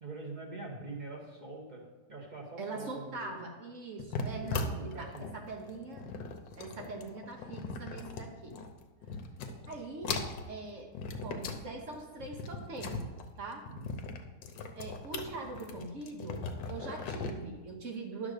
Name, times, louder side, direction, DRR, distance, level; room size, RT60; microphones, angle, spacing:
voice 1, 0.0-3.4 4.1-5.4 13.7-14.0, right 2 dB, 30° right, -1 dB, 1.1 m, -44 dB
voice 2, 2.6-6.1 6.5-8.6 9.6-10.9 11.2-13.7 14.7-18.3, right 3 dB, 50° right, 1 dB, 1.1 m, -42 dB
sound 1, 4.0-8.7 9.0-9.8 10.0-11.6 11.9-17.3, left 4 dB, 80° left, 1.4 m, -39 dB
10.5 x 3.7 x 6.5 m, 1.2 s
omnidirectional pair, 2.0 m